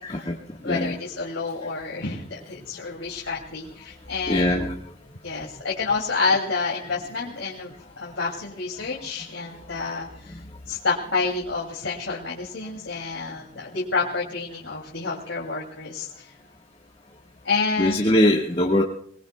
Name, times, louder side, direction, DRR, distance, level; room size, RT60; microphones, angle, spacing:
voice 1, 0.0-0.3 0.6-1.0 4.3-4.8 17.8-18.8, left 1 dB, 30° left, -2 dB, 1.4 m, -21 dB
voice 2, 0.6-4.5 5.2-10.4 10.7-16.3 17.4-18.2 18.8-18.9, left 4 dB, 80° left, -3 dB, 2.7 m, -29 dB
28.0 x 20.0 x 2.3 m, 0.62 s
head